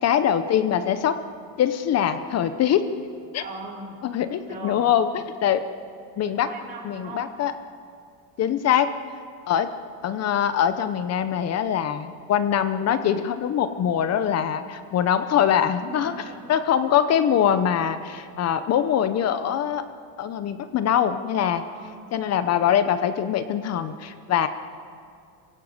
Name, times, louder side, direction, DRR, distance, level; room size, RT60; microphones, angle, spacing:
voice 1, 0.0-1.2 1.6-2.9 3.3-3.4 4.0-5.7 6.2-6.5 6.8-7.5 8.4-8.9 9.5-9.7 10.0-16.1 16.5-19.8 20.2-21.6 22.1-24.5, left 9 dB, 30° left, 11 dB, 0.8 m, -23 dB
voice 2, 3.4-4.0 4.5-4.9 6.2-7.2 15.9-16.4 21.5-22.2, right 3 dB, 20° right, -8 dB, 4.2 m, -39 dB
25.5 x 16.5 x 7.8 m, 2.3 s
cardioid pair, 150°, 50 cm